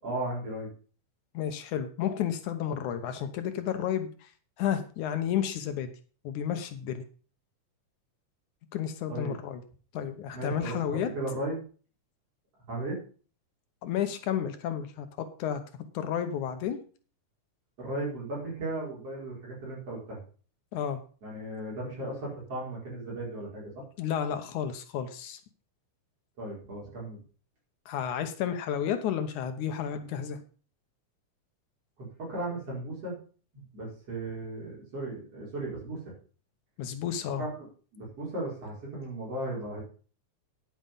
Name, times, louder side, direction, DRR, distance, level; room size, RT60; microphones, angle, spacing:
voice 1, 0.0-0.7 9.1-9.3 10.3-11.6 12.7-13.0 17.8-20.2 21.2-23.8 26.4-27.2 32.0-33.2 33.5-36.1 37.4-37.7 37.9-39.8, right 2 dB, 50° right, -4 dB, 5.7 m, -36 dB
voice 2, 1.3-4.3 4.6-5.9 6.2-7.0 8.7-9.6 9.9-11.1 13.8-15.6 15.9-16.8 20.7-21.0 24.0-25.4 27.9-30.4 36.8-37.4, left 9 dB, 75° left, 8 dB, 2.4 m, -31 dB
10.0 x 8.0 x 5.3 m, 0.39 s
omnidirectional pair, 3.6 m